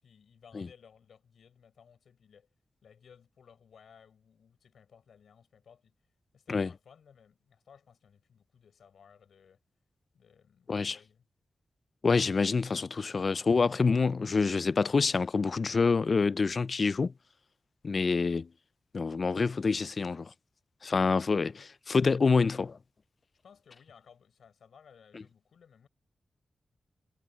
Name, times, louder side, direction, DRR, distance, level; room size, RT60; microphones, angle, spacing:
voice 1, 0.0-2.5 2.8-5.9 6.3-9.6 10.1-11.3 21.1-21.7 23.4-25.9, left 7 dB, 85° left, 5.9 m, -59 dB
voice 2, 12.0-17.1 17.8-18.5 18.9-20.3 20.8-21.5 21.9-22.8, left 4 dB, 50° left, 0.3 m, -26 dB
cardioid pair, 80°, 0 cm